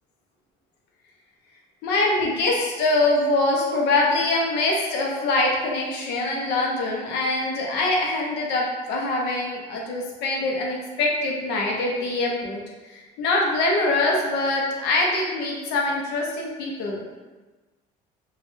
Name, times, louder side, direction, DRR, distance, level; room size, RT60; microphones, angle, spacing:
voice 1, 1.8-12.6 12.9-17.1, left 2 dB, 85° left, -1 dB, 0.6 m, -24 dB
3.1 x 2.2 x 3.0 m, 1.2 s
cardioid pair, 110°, 17 cm